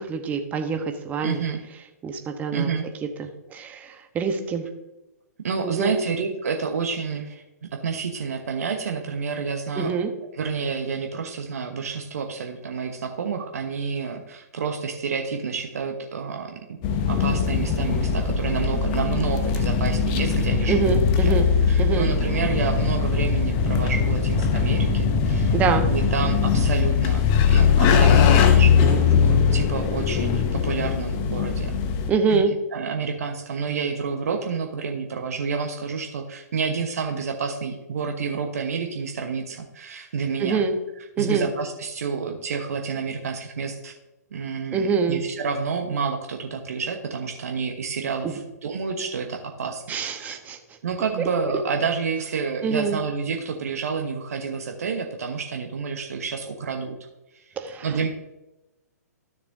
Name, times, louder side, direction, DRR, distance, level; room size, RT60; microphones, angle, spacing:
voice 1, 0.0-1.4 2.0-2.7 3.2-4.7 5.6-6.0 9.8-10.1 20.7-21.5 21.8-22.1 25.5-25.9 32.1-32.5 40.4-40.7 41.2-41.5 44.7-45.2 48.2-48.4 49.9-50.6 51.2-51.3 52.6-53.0 57.6-58.1, right 5 dB, 15° right, 6 dB, 1.0 m, -25 dB
voice 2, 1.2-1.6 2.5-2.8 5.4-7.4 7.7-9.9 10.3-16.5 17.1-20.9 21.2-21.4 21.7-25.5 25.9-27.2 27.5-31.7 32.3-32.4 32.7-40.7 41.2-43.9 44.3-49.8 50.2-50.4 50.8-57.0 57.8-58.1, right 5 dB, 60° right, 3 dB, 1.1 m, -29 dB
sound 1, 16.8-32.1, left 6 dB, 30° left, 0.9 m, -20 dB
13.0 x 6.6 x 2.7 m, 0.95 s
figure-of-eight pair, 120°, 9 cm